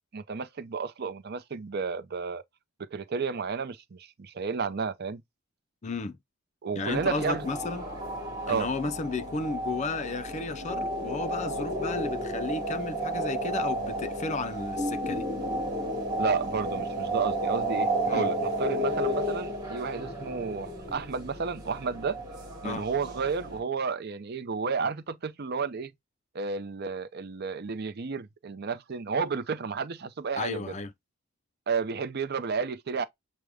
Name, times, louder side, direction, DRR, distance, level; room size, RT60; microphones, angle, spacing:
voice 1, 0.1-2.4 2.9-5.2 6.6-7.4 8.5-8.7 16.2-22.2 22.6-25.9 26.3-30.7 31.7-33.0, right 5 dB, 50° right, 0.5 m, -32 dB
voice 2, 5.8-6.2 6.8-7.9 8.5-15.3 18.1-18.3 22.6-22.9 30.4-30.9, left 3 dB, 35° left, 0.4 m, -33 dB
sound 1, 6.9-23.6, right 1 dB, 20° right, 2.3 m, -32 dB
6.3 x 2.1 x 3.4 m
head